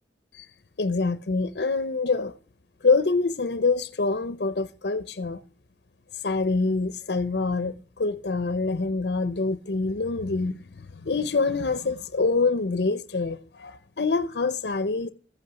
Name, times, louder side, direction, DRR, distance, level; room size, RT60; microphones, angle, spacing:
voice 1, 0.8-2.3 2.8-5.4 6.1-15.1, left 3 dB, 70° left, 0.6 m, -26 dB
14.5 x 8.5 x 6.9 m
head